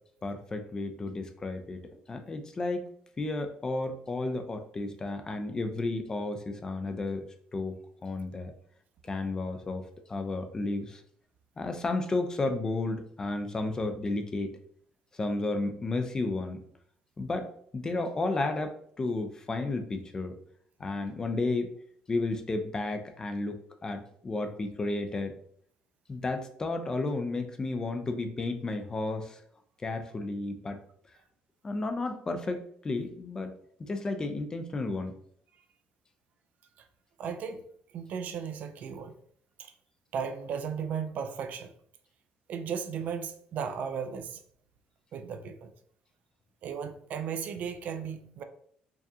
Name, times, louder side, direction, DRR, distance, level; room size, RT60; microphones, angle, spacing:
voice 1, 0.2-1.8 2.1-2.9 3.2-7.3 7.5-8.5 9.1-11.0 11.6-14.5 15.1-16.6 17.2-20.4 20.8-21.7 22.1-25.3 26.1-29.4 29.8-30.8 31.6-33.5 33.8-35.1, left 2 dB, 20° left, 7 dB, 0.4 m, -32 dB
voice 2, 37.2-37.7 37.9-39.2 39.6-39.7 40.1-41.7 42.5-44.4 45.1-45.7 46.6-48.4, right 7 dB, 60° right, 7 dB, 0.4 m, -35 dB
4.6 x 2.4 x 2.7 m, 0.63 s
cardioid pair, 125°, 3 cm